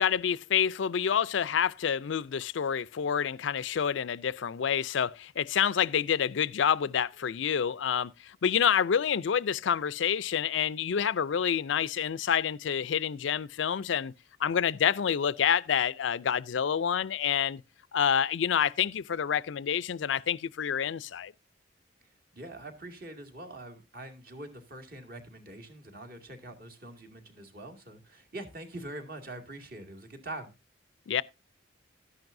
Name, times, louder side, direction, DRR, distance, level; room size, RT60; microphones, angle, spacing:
voice 1, 0.0-14.1 14.4-17.6 17.9-21.3 31.1-31.2, left 8 dB, 75° left, 0.4 m, -28 dB
voice 2, 22.3-30.5, right 1 dB, 50° right, 2.1 m, -44 dB
13.0 x 10.5 x 2.6 m
head